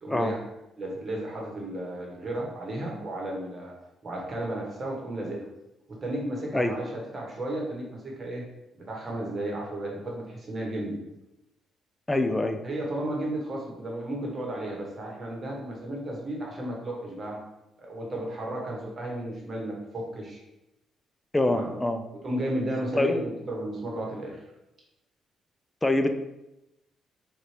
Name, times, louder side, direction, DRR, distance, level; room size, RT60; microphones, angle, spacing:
voice 1, 0.0-0.4 0.8-3.7 4.0-5.5 5.9-8.4 8.7-11.0 12.6-17.4 17.8-20.4 21.5-21.7 22.2-24.4, right 1 dB, 40° right, -1 dB, 1.2 m, -33 dB
voice 2, 12.1-12.6 21.3-22.0 22.9-23.2 25.8-26.1, left 2 dB, 15° left, 7 dB, 0.4 m, -25 dB
4.2 x 2.6 x 3.3 m, 0.92 s
cardioid pair, 90°, 0 cm